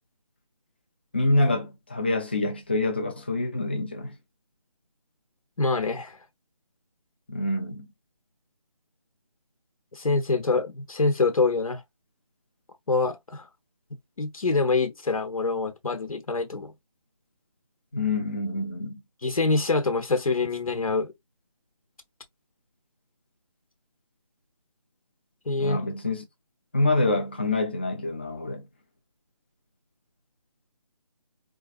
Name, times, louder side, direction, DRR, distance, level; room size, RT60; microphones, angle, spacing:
voice 1, 1.1-4.1 7.3-7.9 17.9-19.0 25.6-26.2 26.7-28.6, left 2 dB, 20° left, 0.5 m, -26 dB
voice 2, 5.6-6.2 9.9-11.8 12.9-13.4 14.2-16.7 19.2-21.1 25.5-25.8, left 3 dB, 75° left, 1.0 m, -25 dB
4.5 x 2.5 x 2.4 m
figure-of-eight pair, 170°, 18 cm